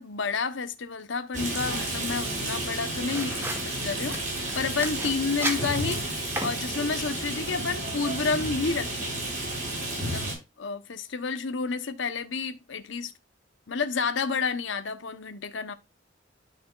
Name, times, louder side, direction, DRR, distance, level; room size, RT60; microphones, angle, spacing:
voice 1, 0.0-3.5 3.8-9.1 10.0-10.3 10.6-13.1 13.7-15.7, left 4 dB, 85° left, 0.9 m, -30 dB
Rain, 1.3-10.3, right 1 dB, 45° right, 5.5 m, -32 dB
sound 1, 3.1-7.2, right 1 dB, 15° right, 2.1 m, -36 dB
12.0 x 5.7 x 2.4 m
head